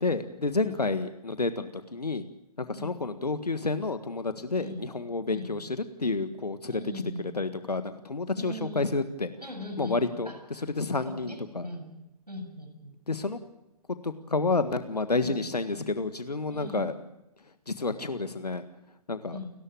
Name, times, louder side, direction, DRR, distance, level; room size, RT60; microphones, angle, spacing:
voice 1, 0.0-2.2 2.7-9.3 9.8-10.3 10.8-11.7 13.1-13.4 14.0-16.9 17.7-18.6 19.1-19.4, left 3 dB, 80° left, 10 dB, 1.6 m, -30 dB
voice 2, 6.7-7.3 8.3-8.9 9.4-10.7 11.1-12.0 12.3-13.0 15.2-15.4 16.5-16.9 19.3-19.5, left 1 dB, 90° right, 5 dB, 7.6 m, -40 dB
29.5 x 13.5 x 9.0 m, 0.91 s
figure-of-eight pair, 125°, 20 cm